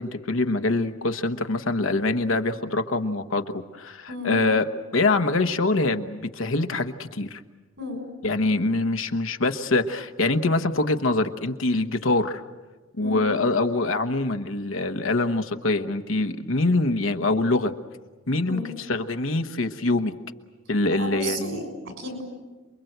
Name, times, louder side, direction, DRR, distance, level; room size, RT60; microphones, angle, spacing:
voice 1, 0.0-3.4 3.7-4.7 4.9-7.4 8.2-12.4 13.0-17.7 18.3-18.6 18.9-20.1 20.7-21.6, left 2 dB, 65° left, 8 dB, 1.2 m, -24 dB
voice 2, 4.1-4.4 7.8-8.0 13.0-13.3 18.5-18.7 20.9-22.2, left 1 dB, 60° right, 5 dB, 6.7 m, -33 dB
28.0 x 22.5 x 8.0 m, 1.3 s
head